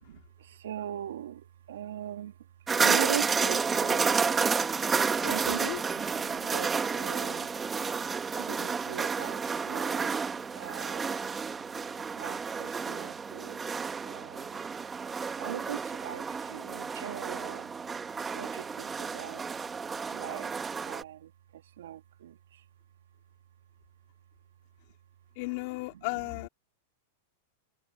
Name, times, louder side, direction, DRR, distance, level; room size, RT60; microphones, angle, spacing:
voice 1, 0.0-2.4 2.8-4.6 5.2-7.5 7.8-7.9 8.4-10.2 10.5-11.3 12.2-13.6 14.0-14.6 15.4-17.7 18.3-19.4 20.1-20.5 20.8-22.6 25.9-26.0, right 11 dB, 80° right, 2.0 m, -40 dB
sound 1, 2.7-21.0, right 5 dB, 15° right, 1.2 m, -31 dB
voice 2, 5.2-5.8 25.4-26.5, left 26 dB, 55° left, 2.9 m, -35 dB
hypercardioid pair, 120°, 0 cm